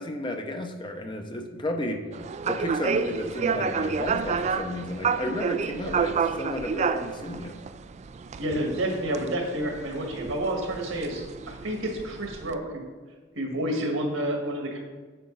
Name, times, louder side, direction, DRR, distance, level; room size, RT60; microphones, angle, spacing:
voice 1, 0.0-2.0 2.4-7.6, left 1 dB, 25° left, 5 dB, 0.7 m, -33 dB
sound 1, 2.1-12.5, right 5 dB, 35° right, 0.3 m, -30 dB
voice 2, 8.4-12.8 13.3-14.8, right 1 dB, 75° right, 1 dB, 1.7 m, -29 dB
8.8 x 6.4 x 3.9 m, 1.4 s
head